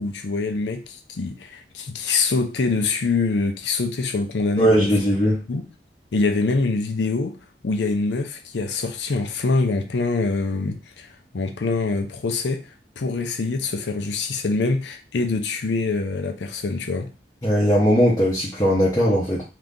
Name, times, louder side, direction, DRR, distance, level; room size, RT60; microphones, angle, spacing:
voice 1, 0.0-4.9 5.5-5.6 6.1-7.4 7.6-11.1 11.3-12.7 13.0-17.1, left 3 dB, 80° left, 0.5 m, -24 dB
voice 2, 4.6-5.4 17.4-19.4, equal, 20° left, 0.7 m, -19 dB
2.8 x 2.5 x 3.5 m
head